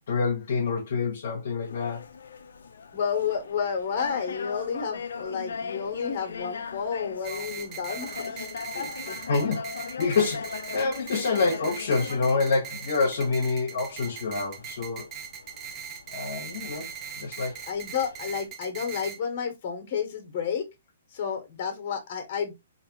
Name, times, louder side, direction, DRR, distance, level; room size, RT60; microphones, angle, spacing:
voice 1, 0.1-2.1 9.2-15.1 16.1-16.9 17.2-17.5, left 4 dB, 65° left, 0.9 m, -27 dB
sound 1, 1.6-18.5, left 5 dB, 80° left, 0.4 m, -40 dB
voice 2, 2.9-8.5 8.7-9.2 17.7-20.7 21.1-22.5, left 7 dB, 40° left, 1.2 m, -31 dB
sound 2, 7.2-19.2, right 8 dB, 25° right, 0.5 m, -40 dB
3.3 x 2.6 x 2.9 m
hypercardioid pair, 145°, 0 cm